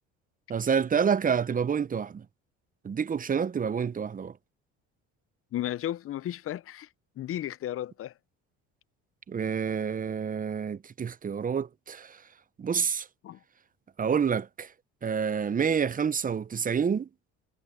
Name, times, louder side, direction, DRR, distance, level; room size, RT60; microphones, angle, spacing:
voice 1, 0.5-2.2 2.8-4.3 9.3-12.2 12.6-13.1 14.0-14.7 15.0-17.1, right 7 dB, 25° right, 0.7 m, -28 dB
voice 2, 5.5-6.9 7.2-8.1 13.2-13.4, left 12 dB, 45° left, 0.6 m, -34 dB
supercardioid pair, 80°, 31 cm